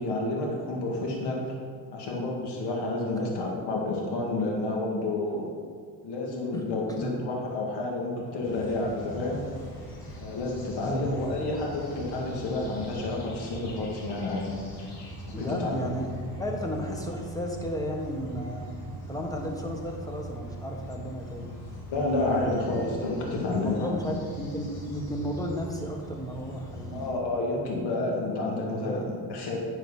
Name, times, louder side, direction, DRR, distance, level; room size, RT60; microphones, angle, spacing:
voice 1, 0.0-1.4 1.9-5.4 6.0-9.4 10.2-14.5 15.3-15.9 21.9-23.9 26.9-29.6, left 2 dB, 70° left, -2 dB, 2.1 m, -30 dB
sound 1, 8.4-27.1, right 1 dB, 90° left, 2.3 m, -41 dB
voice 2, 15.3-16.1 16.4-18.7 19.1-21.6 23.5-27.2 28.8-29.1, equal, 10° left, 1 dB, 1.4 m, -34 dB
9.8 x 4.8 x 5.6 m, 2.1 s
cardioid pair, 105°, 41 cm